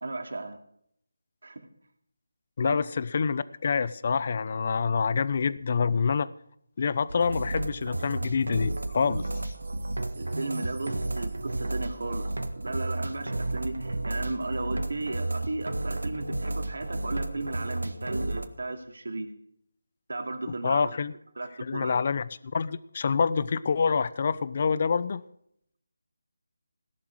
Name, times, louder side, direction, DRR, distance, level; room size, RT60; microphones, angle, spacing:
voice 1, 0.0-0.6 1.4-1.7 2.6-2.8 10.2-19.3 20.1-20.9 21.4-22.0, right 2 dB, 70° right, 5 dB, 2.5 m, -35 dB
voice 2, 2.6-6.3 6.8-9.3 20.6-21.1 21.6-22.2 22.5-25.2, left 5 dB, 45° left, 17 dB, 0.7 m, -26 dB
sound 1, 7.1-18.5, right 2 dB, 90° right, 1.5 m, -32 dB
sound 2, 8.6-13.3 13.8-13.9 14.3-14.4 14.9-15.0, right 4 dB, 50° right, 1.9 m, -55 dB
17.5 x 11.5 x 4.8 m, 0.70 s
figure-of-eight pair, 160°, 0 cm